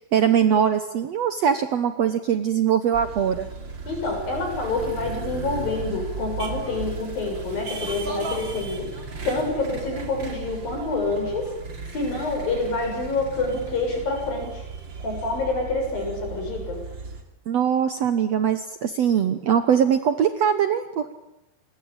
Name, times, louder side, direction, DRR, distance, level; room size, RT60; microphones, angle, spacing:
voice 1, 0.1-3.5 17.5-21.1, right 8 dB, 65° right, 9 dB, 1.7 m, -22 dB
sound 1, 2.9-17.2, right 4 dB, 35° right, 3.0 m, -35 dB
voice 2, 3.9-8.9 9.3-11.5 11.9-14.6 15.0-16.8, left 3 dB, 70° left, 2 dB, 8.9 m, -27 dB
28.0 x 21.0 x 8.9 m, 0.93 s
omnidirectional pair, 4.2 m